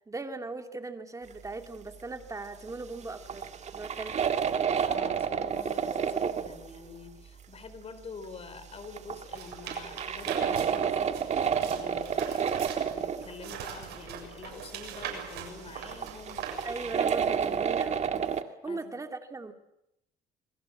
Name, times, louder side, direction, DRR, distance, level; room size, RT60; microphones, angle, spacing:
voice 1, 0.1-4.5 16.6-18.3 18.6-19.5, right 3 dB, 20° right, 5 dB, 2.7 m, -39 dB
sound 1, 2.7-2.8 3.1-6.7 8.8-13.5 15.8-18.4, right 7 dB, 40° right, 1.8 m, -30 dB
voice 2, 4.9-16.5 16.8-16.9 17.2-17.6 18.7-19.0, left 4 dB, 35° left, 11 dB, 4.5 m, -46 dB
sound 2, 9.3-17.0, right 8 dB, 80° right, 7.3 m, -42 dB
28.5 x 21.5 x 7.7 m, 0.83 s
cardioid pair, 110°, 17 cm